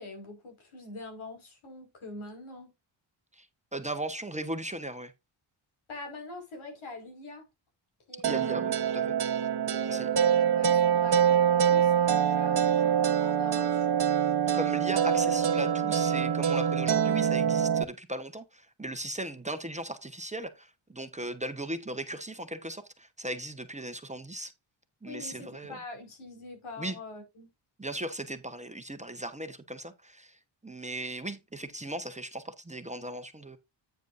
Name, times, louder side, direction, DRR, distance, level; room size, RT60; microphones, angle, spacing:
voice 1, 0.0-2.7 5.9-7.5 8.1-8.7 9.7-14.0 25.1-27.5, equal, 85° left, 5.2 m, -43 dB
voice 2, 3.7-5.1 8.3-9.2 9.9-10.1 14.5-24.5 25.0-25.8 26.8-27.0 27.8-33.6, right 1 dB, 15° right, 1.1 m, -37 dB
sound 1, 8.2-17.8, right 8 dB, 55° right, 1.0 m, -25 dB
9.2 x 8.0 x 2.6 m
cardioid pair, 90°, 48 cm